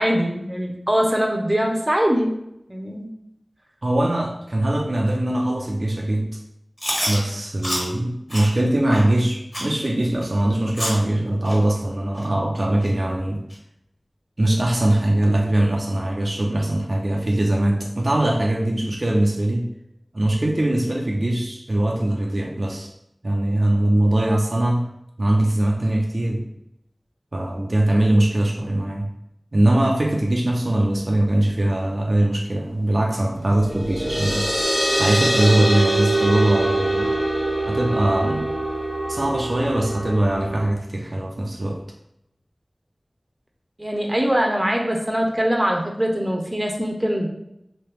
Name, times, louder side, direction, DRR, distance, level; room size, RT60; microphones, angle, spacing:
voice 1, 0.0-2.4 2.7-3.1 43.8-47.3, equal, 20° right, 1 dB, 0.7 m, -22 dB
voice 2, 3.8-6.3 7.1-13.4 14.4-19.7 20.1-22.9 23.2-24.9 25.2-26.5 27.3-29.1 29.5-34.5 35.0-37.1 37.7-38.5 39.1-41.8, right 1 dB, 60° right, 0 dB, 0.5 m, -21 dB
Chewing mastication, 6.8-7.2 7.6-7.8 8.3-8.5 8.9-9.0 9.5-9.7 10.2-10.3 10.8-11.0 11.5-11.6 12.2-12.3 12.8-12.9 13.5-13.6, equal, 25° left, 1.3 m, -27 dB
sound 1, 33.5-40.7, right 1 dB, 60° left, 1.2 m, -23 dB
3.0 x 2.8 x 3.3 m, 0.82 s
wide cardioid pair, 45°, 0 cm